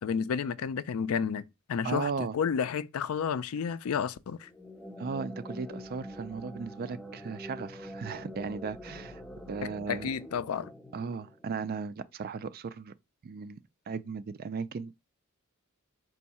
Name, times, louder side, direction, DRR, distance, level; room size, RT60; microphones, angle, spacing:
voice 1, 0.0-4.5 9.9-10.7, left 7 dB, 70° left, 0.4 m, -31 dB
voice 2, 1.8-2.4 5.0-9.2 9.5-10.1 10.9-12.9 13.2-13.6 13.9-15.1, right 5 dB, 45° right, 0.3 m, -36 dB
sound 1, 4.4-11.8, equal, 5° left, 0.7 m, -45 dB
4.6 x 2.6 x 4.2 m
head